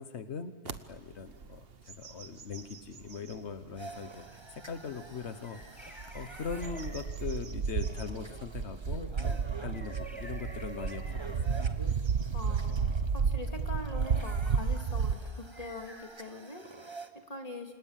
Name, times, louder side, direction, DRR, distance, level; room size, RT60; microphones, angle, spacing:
voice 1, 0.0-11.6, left 5 dB, 90° left, 9 dB, 1.4 m, -41 dB
sound 1, 0.7-0.8 1.3-1.5 1.9-3.4 4.0-4.1 5.8-15.1, right 6 dB, 65° right, 1.3 m, -32 dB
sound 2, 3.8-17.1, right 3 dB, 25° right, 1.5 m, -48 dB
sound 3, 5.4-7.3 9.0-11.3 15.5-16.0, left 1 dB, ahead, 5.9 m, -53 dB
voice 2, 12.3-17.7, left 2 dB, 35° left, 3 dB, 2.9 m, -43 dB
29.0 x 26.5 x 7.4 m, 1.3 s
omnidirectional pair, 1.1 m